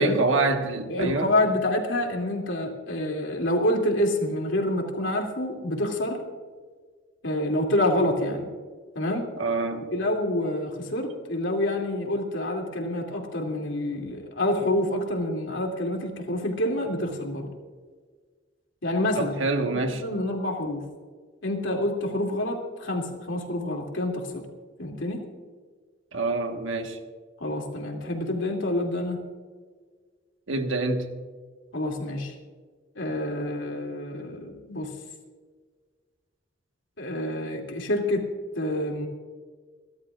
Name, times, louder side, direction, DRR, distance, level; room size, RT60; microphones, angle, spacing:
voice 1, 0.0-1.3 9.4-9.9 19.1-20.0 26.1-27.0 30.5-31.1, right 3 dB, 80° right, 5 dB, 1.4 m, -26 dB
voice 2, 0.9-6.2 7.2-8.5 8.9-9.3 9.9-17.5 18.8-19.3 19.7-20.8 21.4-24.4 24.8-25.2 27.4-29.2 31.7-32.3 33.0-34.9 37.0-38.3 38.6-39.1, left 1 dB, 75° left, 1 dB, 2.6 m, -27 dB
29.5 x 12.5 x 2.5 m, 1.5 s
head